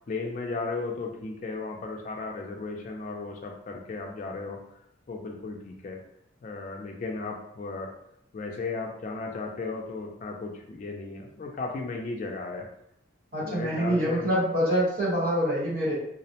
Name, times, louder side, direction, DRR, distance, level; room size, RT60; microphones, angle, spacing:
voice 1, 0.1-4.6 5.1-6.0 6.4-7.9 8.3-12.7 13.4-14.3, left 3 dB, 40° left, 1 dB, 0.3 m, -35 dB
voice 2, 13.3-16.0, equal, 50° right, -6 dB, 1.0 m, -25 dB
2.4 x 2.0 x 2.7 m, 0.73 s
head